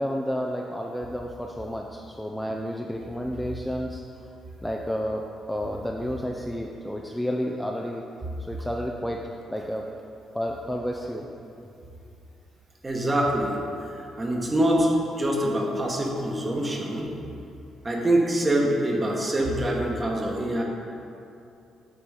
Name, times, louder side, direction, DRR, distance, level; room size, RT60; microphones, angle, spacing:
voice 1, 0.0-4.0 4.6-5.2 5.5-8.0 8.5-9.9 10.3-11.3, equal, 5° left, 0 dB, 0.4 m, -31 dB
voice 2, 12.8-13.6 14.0-17.1 17.8-20.6, right 1 dB, 25° right, 0 dB, 1.2 m, -25 dB
8.6 x 3.9 x 4.8 m, 2.6 s
cardioid pair, 90°, 0 cm